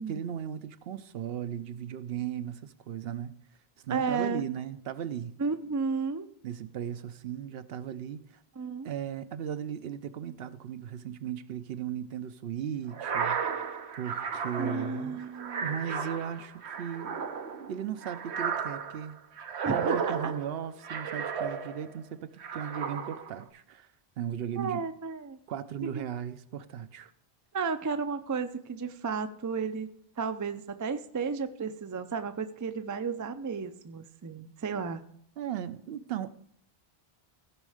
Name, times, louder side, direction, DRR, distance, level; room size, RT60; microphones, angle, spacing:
voice 1, 0.1-3.3 3.8-5.3 6.4-8.4 8.8-13.7 14.0-15.2 15.6-17.2 17.7-19.2 19.7-23.9 24.2-24.8 25.5-27.1 35.4-36.3, right 9 dB, 70° right, 0.8 m, -36 dB
voice 2, 3.9-4.4 5.4-6.3 8.6-8.9 14.6-15.7 19.6-20.3 24.6-25.4 25.8-26.1 27.5-29.9 30.2-35.0, right 5 dB, 30° right, 0.3 m, -33 dB
sound 1, 12.9-22.0 22.4-23.4, right 6 dB, 90° right, 1.1 m, -34 dB
16.0 x 5.3 x 4.9 m
omnidirectional pair, 1.1 m